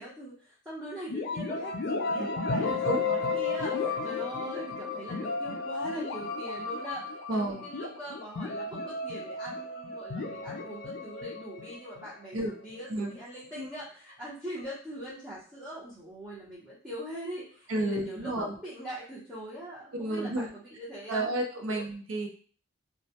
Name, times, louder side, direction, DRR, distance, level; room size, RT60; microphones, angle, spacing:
voice 1, 0.0-12.4 12.6-20.5 20.8-21.3 21.7-21.8, right 1 dB, 10° right, -10 dB, 0.6 m, -42 dB
sound 1, 1.1-12.8, left 4 dB, 55° left, 0.3 m, -33 dB
voice 2, 2.6-3.0 7.3-7.6 12.3-12.5 12.9-13.1 13.5-13.7 17.7-18.6 19.9-20.5 21.1-22.3, right 1 dB, 80° right, 1 dB, 0.6 m, -31 dB
2.2 x 2.0 x 2.7 m, 0.42 s
head